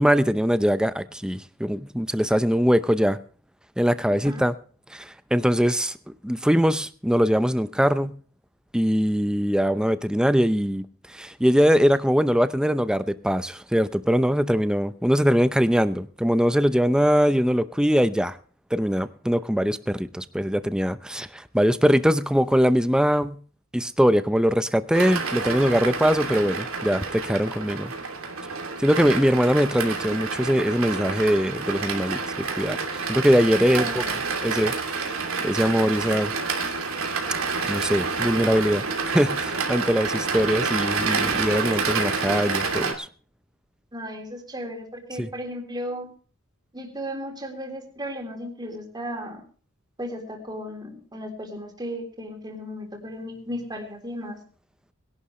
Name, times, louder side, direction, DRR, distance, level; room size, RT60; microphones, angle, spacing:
voice 1, 0.0-3.2 3.8-4.5 4.9-6.0 6.2-8.1 8.7-10.8 11.1-18.4 18.7-23.4 23.7-27.9 28.8-32.8 33.1-34.0 34.4-36.3 37.6-38.8 39.1-43.1 45.2-45.3, equal, 5° right, 0.7 m, -22 dB
voice 2, 4.1-4.4 33.7-34.1 43.9-46.1 46.7-49.4 50.0-54.4, equal, 20° right, 3.5 m, -35 dB
sound 1, 24.9-42.9, right 4 dB, 75° right, 2.8 m, -28 dB
21.0 x 11.5 x 3.2 m
head